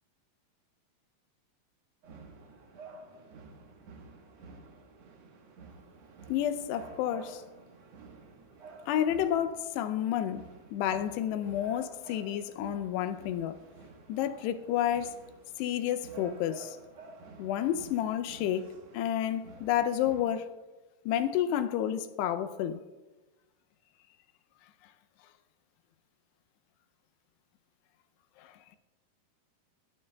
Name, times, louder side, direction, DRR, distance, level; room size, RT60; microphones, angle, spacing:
sound 1, 2.0-20.2, right 3 dB, 65° right, 1.7 m, -51 dB
voice 1, 6.3-7.4 8.9-13.6 14.1-15.2 15.6-16.8 17.4-20.5 21.1-22.8 28.4-28.5, left 10 dB, 85° left, 2.7 m, -30 dB
17.0 x 12.0 x 2.3 m
omnidirectional pair, 4.8 m